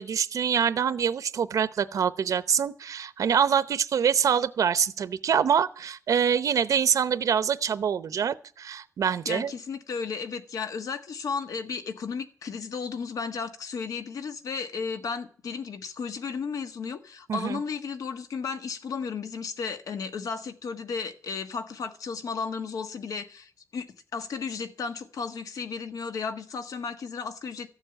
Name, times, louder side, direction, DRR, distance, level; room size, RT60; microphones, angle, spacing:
voice 1, 0.0-9.5 17.3-17.6, right 7 dB, 75° right, 0.7 m, -25 dB
voice 2, 9.3-27.7, left 5 dB, 85° left, 1.5 m, -34 dB
14.0 x 7.3 x 8.9 m
wide cardioid pair, 170°, 6 cm